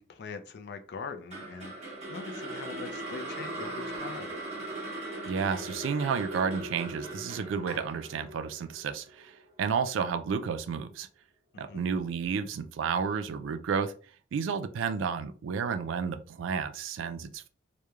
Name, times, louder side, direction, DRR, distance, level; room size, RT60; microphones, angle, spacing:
voice 1, 0.0-4.3 11.5-11.8, left 5 dB, 55° left, 8 dB, 0.4 m, -42 dB
sound 1, 1.3-9.5, right 2 dB, 35° right, 0.9 m, -39 dB
voice 2, 5.2-11.1 11.6-13.9 14.3-17.5, right 6 dB, 70° right, 10 dB, 0.3 m, -31 dB
3.0 x 2.1 x 2.3 m, 0.39 s
head